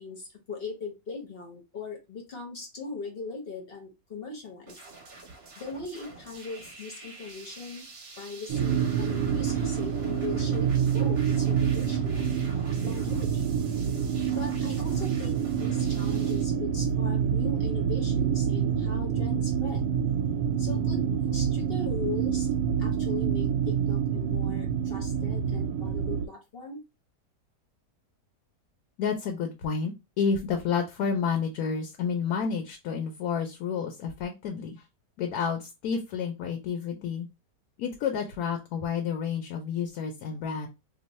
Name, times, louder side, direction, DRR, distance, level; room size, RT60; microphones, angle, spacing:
voice 1, 0.0-4.8 5.6-7.8 8.2-13.5 14.3-19.8 20.6-22.5 22.8-26.8, left 4 dB, 45° left, 2 dB, 0.8 m, -39 dB
sound 1, 4.7-16.4, right 3 dB, 45° right, 0.9 m, -47 dB
sound 2, 8.5-26.3, right 8 dB, 70° right, 1.0 m, -27 dB
voice 2, 29.0-34.8 35.2-37.3 37.8-40.7, left 6 dB, 70° left, 4 dB, 1.0 m, -30 dB
3.0 x 2.0 x 4.0 m, 0.24 s
omnidirectional pair, 1.8 m